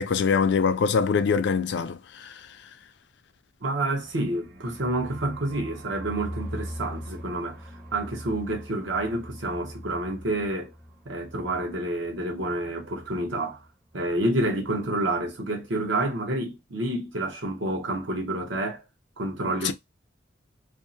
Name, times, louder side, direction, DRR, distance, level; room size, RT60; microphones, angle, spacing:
voice 1, 0.0-2.3 19.6-19.7, left 5 dB, 65° left, 0.4 m, -23 dB
voice 2, 3.6-10.7 11.1-13.6 13.9-18.8 19.2-19.7, right 1 dB, 80° right, 0.9 m, -29 dB
sound 1, 4.0-13.7 13.9-14.0 14.3-14.8, equal, 45° right, 0.8 m, -42 dB
2.6 x 2.0 x 2.5 m
head